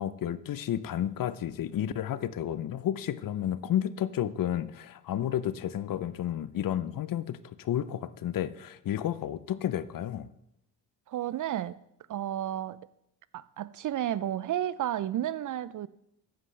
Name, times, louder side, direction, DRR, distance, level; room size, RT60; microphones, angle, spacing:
voice 1, 0.0-10.3, left 11 dB, 55° left, 0.6 m, -31 dB
voice 2, 11.1-11.8 12.1-12.8 13.3-15.9, right 11 dB, 50° right, 0.5 m, -32 dB
14.0 x 9.6 x 3.2 m
supercardioid pair, 55°, 42 cm